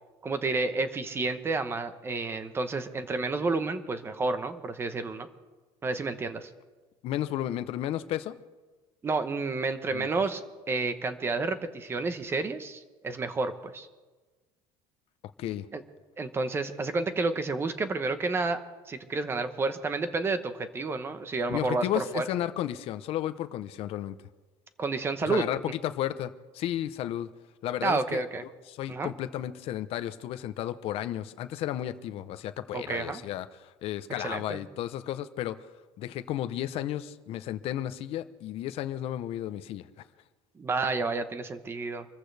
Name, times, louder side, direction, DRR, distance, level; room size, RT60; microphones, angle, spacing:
voice 1, 0.2-5.3 5.8-6.5 9.0-10.4 10.7-13.9 15.7-15.8 16.2-18.6 18.9-22.2 24.8-25.5 27.8-28.4 28.9-29.1 32.7-33.2 34.2-34.6 40.6-42.1, right 3 dB, 15° right, 1.0 m, -30 dB
voice 2, 7.0-8.3 9.9-10.1 15.4-15.7 21.5-24.2 25.3-27.3 27.6-28.2 28.7-35.7 36.0-39.9, left 12 dB, 45° left, 0.8 m, -33 dB
26.5 x 14.5 x 3.4 m
cardioid pair, 170°, 14 cm